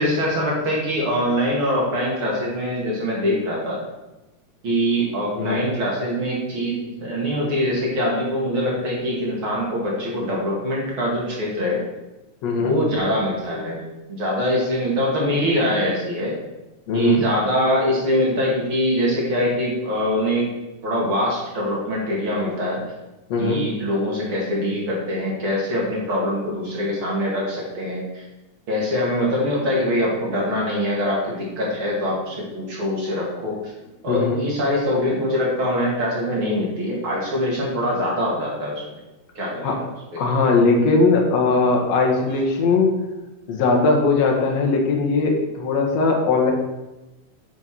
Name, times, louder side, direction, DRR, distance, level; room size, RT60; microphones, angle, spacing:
voice 1, 0.0-3.8 4.6-11.8 12.6-13.8 14.1-16.4 16.9-20.5 20.8-22.8 23.4-28.2 28.7-33.6 34.0-38.8 39.3-39.9 40.1-40.2, equal, 40° right, -3 dB, 3.2 m, -23 dB
voice 2, 12.4-12.8 16.9-17.2 23.3-23.6 34.1-34.4 39.6-39.8 40.2-42.9 43.5-46.5, left 3 dB, 55° left, 0 dB, 2.7 m, -19 dB
10.5 x 5.9 x 6.4 m, 1.0 s
omnidirectional pair, 3.7 m